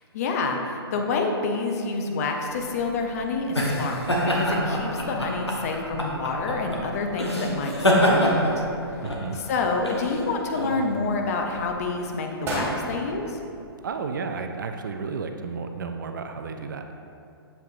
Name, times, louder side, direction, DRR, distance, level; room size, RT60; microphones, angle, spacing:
voice 1, 0.1-4.0 4.3-9.0 9.3-13.4, left 3 dB, 35° left, 3 dB, 0.6 m, -28 dB
sound 1, 2.5-11.7, equal, 90° left, 1.0 m, -26 dB
sound 2, 8.8-9.5 9.9-10.8 11.3-11.7 12.1-12.2 12.4-14.4 14.7-14.8, right 1 dB, 15° right, 1.0 m, -35 dB
voice 2, 9.0-9.4 13.8-16.8, right 5 dB, 50° right, 6 dB, 0.4 m, -32 dB
7.2 x 5.5 x 2.4 m, 2.5 s
figure-of-eight pair, 120°, 14 cm